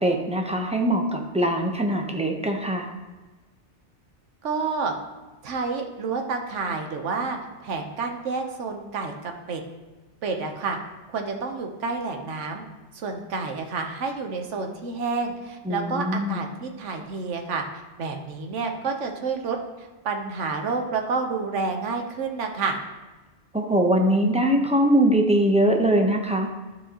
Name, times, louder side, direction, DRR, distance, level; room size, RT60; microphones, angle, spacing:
voice 1, 0.0-2.9 15.6-16.4 23.5-26.5, right 1 dB, 5° right, 2 dB, 0.6 m, -22 dB
voice 2, 4.4-4.9 5.4-9.6 10.2-10.8 11.1-12.6 12.9-17.6 18.0-22.8, right 4 dB, 85° right, 3 dB, 1.2 m, -29 dB
12.0 x 4.6 x 2.9 m, 1.2 s
omnidirectional pair, 1.2 m